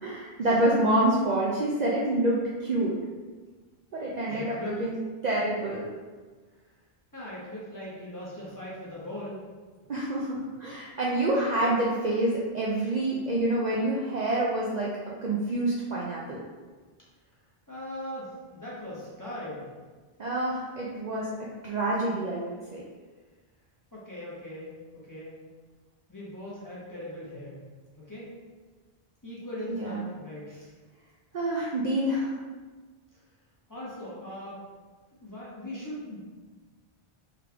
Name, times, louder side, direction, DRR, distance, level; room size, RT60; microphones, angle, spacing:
voice 1, 0.0-3.0 3.9-5.0 5.2-5.9 9.9-14.9 15.2-16.4 20.2-21.3 21.6-22.8 29.7-30.1 31.3-32.3, right 1 dB, 50° right, -5 dB, 0.6 m, -27 dB
voice 2, 4.3-4.8 6.5-6.7 7.1-9.4 17.7-19.7 23.9-25.4 26.1-27.6 28.0-28.3 29.2-30.7 33.7-34.6 35.1-36.2, left 1 dB, 20° left, -8 dB, 1.1 m, -40 dB
3.7 x 3.3 x 3.4 m, 1.4 s
omnidirectional pair, 1.0 m